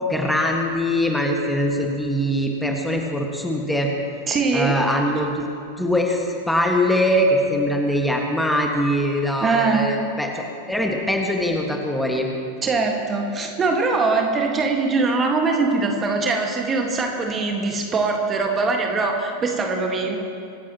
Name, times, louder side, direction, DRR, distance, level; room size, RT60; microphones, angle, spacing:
voice 1, 0.1-3.9 4.5-5.5 5.8-12.3, equal, 5° left, 1 dB, 1.8 m, -22 dB
voice 2, 4.3-4.8 9.4-9.9 12.6-20.2, right 3 dB, 20° right, 2 dB, 1.7 m, -22 dB
25.5 x 14.5 x 3.0 m, 2.5 s
figure-of-eight pair, 90°, 0 cm